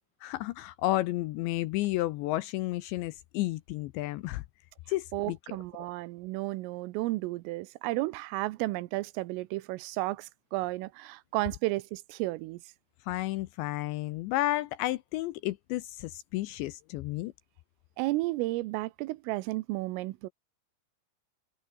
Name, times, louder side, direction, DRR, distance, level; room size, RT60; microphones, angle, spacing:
voice 1, 0.2-4.4 4.9-5.6 13.1-17.3, left 17 dB, 80° left, 2.7 m, -32 dB
voice 2, 5.1-12.6 18.0-20.3, right 20 dB, 85° right, 3.4 m, -33 dB
omnidirectional pair, 5.8 m